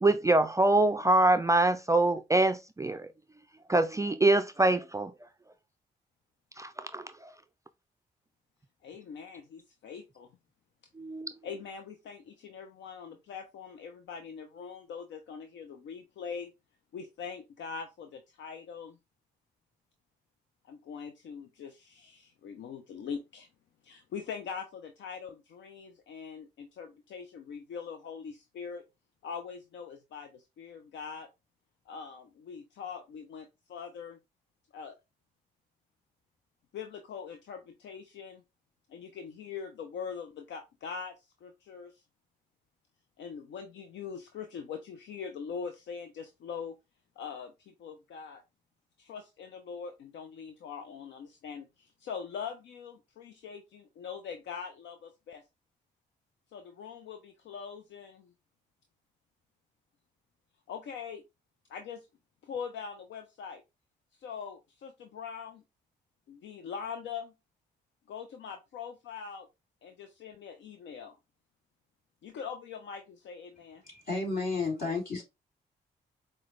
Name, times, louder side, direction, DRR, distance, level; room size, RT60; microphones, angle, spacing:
voice 1, 0.0-3.1 3.7-5.1 6.6-7.0 11.0-11.3, right 2 dB, 15° right, 0.4 m, -24 dB
voice 2, 8.8-10.3 11.4-16.5 16.9-19.0 20.6-23.5 23.8-28.8 29.2-31.3 31.9-34.2 34.7-35.0 36.7-38.4 38.9-42.0 43.2-46.8 47.2-48.4 49.0-55.4 56.5-58.3 60.7-61.2 61.7-62.1 62.4-63.6 64.2-65.6 66.3-67.3 68.1-69.5 69.8-71.2 72.2-73.8, left 6 dB, 70° left, 0.5 m, -42 dB
voice 3, 73.8-75.2, left 3 dB, 50° left, 2.5 m, -32 dB
4.8 x 2.2 x 3.0 m
hypercardioid pair, 45°, 20 cm